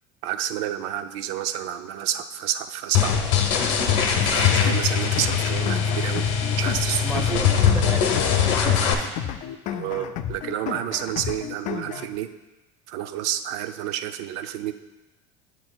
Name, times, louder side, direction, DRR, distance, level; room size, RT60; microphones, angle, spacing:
voice 1, 0.2-3.1 4.2-6.3 6.6-7.4 9.7-12.3 12.9-14.7, right 11 dB, 75° right, 10 dB, 0.5 m, -29 dB
sound 1, 2.9-8.9, left 7 dB, 85° left, 0.8 m, -21 dB
sound 2, 4.2-12.2, left 10 dB, 55° left, 0.4 m, -33 dB
voice 2, 7.0-9.3, equal, ahead, -4 dB, 0.8 m, -34 dB
7.8 x 7.4 x 2.3 m, 1.0 s
supercardioid pair, 105°, 15 cm